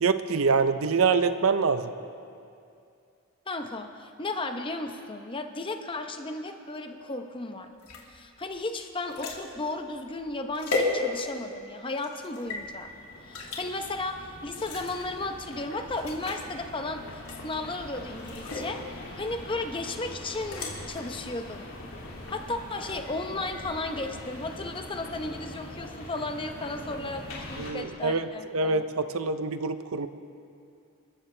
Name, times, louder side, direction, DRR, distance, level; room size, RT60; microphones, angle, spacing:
voice 1, 0.0-1.9 27.6-28.3 28.5-30.1, right 4 dB, 70° right, 11 dB, 0.6 m, -25 dB
voice 2, 3.5-7.7 8.1-12.9 13.3-17.0 17.4-18.8 19.1-21.7 22.3-28.8, left 2 dB, 25° left, 6 dB, 0.8 m, -34 dB
sound 1, 7.8-11.5 12.0-12.6 13.3-13.6 14.5-15.1 15.5-15.6 15.9-16.5 17.2-17.7 18.2-18.7 20.3-20.7, left 3 dB, 85° left, 2.3 m, -34 dB
sound 2, 12.4-27.7, left 1 dB, 70° left, 2.6 m, -43 dB
26.5 x 13.5 x 3.3 m, 2.5 s
head